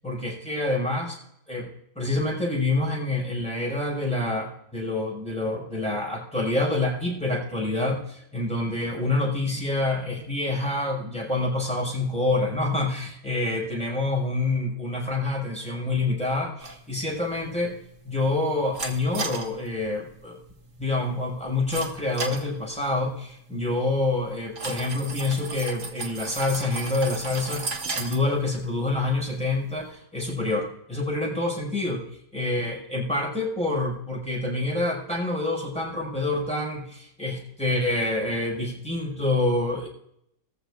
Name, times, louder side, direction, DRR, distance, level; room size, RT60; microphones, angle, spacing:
voice 1, 0.0-1.2 1.5-1.7 2.0-17.7 18.0-20.4 20.8-32.0 32.3-39.9, left 2 dB, 5° left, -3 dB, 5.6 m, -27 dB
sound 1, 16.6-29.9, right 3 dB, 50° right, 1.8 m, -38 dB
19.5 x 14.5 x 2.5 m, 0.73 s
omnidirectional pair, 1.6 m